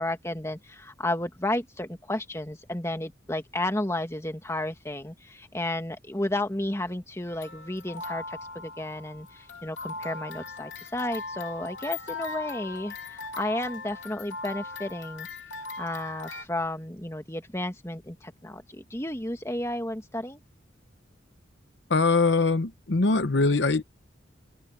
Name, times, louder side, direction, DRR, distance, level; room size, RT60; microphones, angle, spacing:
voice 1, 0.0-15.3 15.8-20.4, left 1 dB, 15° left, 2.1 m, -32 dB
sound 1, 7.3-16.5, left 3 dB, 85° left, 2.9 m, -39 dB
voice 2, 21.9-23.8, left 3 dB, 65° left, 0.9 m, -22 dB
open air
head